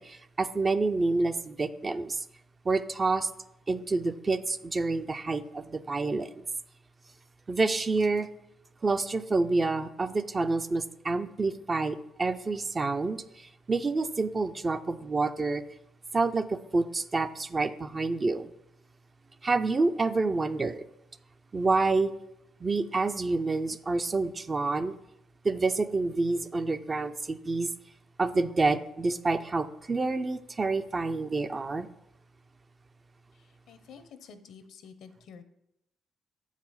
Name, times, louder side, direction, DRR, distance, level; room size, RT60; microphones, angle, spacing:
voice 1, 0.0-2.2 2.7-3.3 3.7-6.4 7.5-8.3 8.8-15.6 16.1-18.5 19.4-20.8 21.5-22.1 22.6-25.0 25.4-27.7 28.2-31.9, right 3 dB, 30° right, 10 dB, 0.4 m, -28 dB
voice 2, 33.3-35.4, left 6 dB, 75° left, 10 dB, 0.7 m, -50 dB
7.4 x 4.9 x 5.6 m, 0.84 s
cardioid pair, 90°, 0 cm